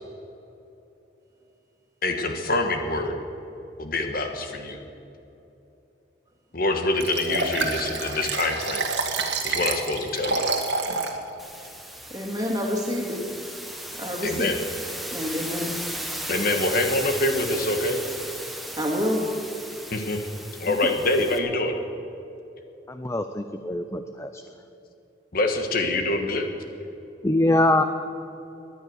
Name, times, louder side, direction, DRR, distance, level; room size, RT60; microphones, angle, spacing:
voice 1, 2.0-3.1 3.8-4.8 6.5-8.9 9.4-10.5 14.2-14.6 16.3-18.0 19.9-20.2 20.6-21.8 25.3-26.5, left 2 dB, 50° left, 5 dB, 1.4 m, -25 dB
Liquid, 7.0-11.2 11.6-11.7, right 3 dB, 65° right, 1.8 m, -28 dB
sound 1, 11.4-21.4, right 1 dB, ahead, 1.1 m, -36 dB
voice 2, 12.1-13.2 13.9-14.5 15.1-15.8 18.8-19.2 20.7-20.8, equal, 20° right, 0 dB, 2.5 m, -28 dB
voice 3, 22.9-24.4 27.2-27.8, left 1 dB, 15° left, 8 dB, 0.5 m, -23 dB
18.5 x 11.0 x 6.5 m, 3.0 s
head